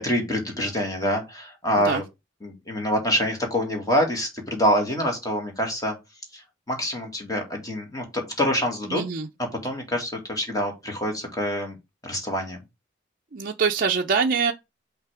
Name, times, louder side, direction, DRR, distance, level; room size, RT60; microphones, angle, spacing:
voice 1, 0.0-2.0 2.4-6.0 6.3-6.4 6.7-9.0 9.6-11.8 12.0-12.6, equal, 20° left, 2.0 m, -26 dB
voice 2, 8.9-9.3 13.3-14.5, right 5 dB, 50° right, 0.5 m, -24 dB
5.7 x 3.3 x 5.0 m
head